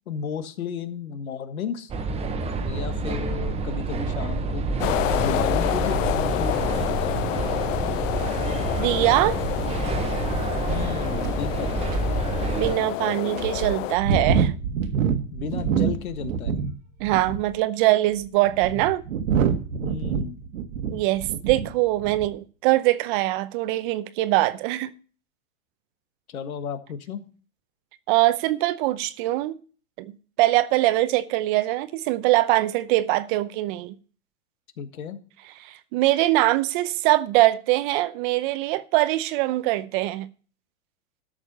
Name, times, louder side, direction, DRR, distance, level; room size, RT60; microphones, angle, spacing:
voice 1, 0.1-1.9 2.6-4.6 5.1-7.2 10.7-11.7 15.3-16.6 19.8-20.4 26.3-27.2 34.8-35.2, left 7 dB, 85° left, 1.6 m, -33 dB
sound 1, 1.9-12.7, right 3 dB, 15° right, 1.0 m, -28 dB
sound 2, 4.8-14.0, left 16 dB, 65° left, 0.6 m, -28 dB
voice 2, 8.8-9.4 12.6-14.5 17.0-19.0 20.9-24.9 28.1-29.5 30.0-30.1 30.4-33.9 35.6-40.3, right 17 dB, 40° right, 0.7 m, -22 dB
sound 3, 11.2-11.3 11.9-12.0 12.7-12.8 13.4-16.7 17.0-17.5 18.2-21.7 22.0-22.3, right 6 dB, 70° right, 1.5 m, -25 dB
13.0 x 6.5 x 5.4 m
hypercardioid pair, 130°, 41 cm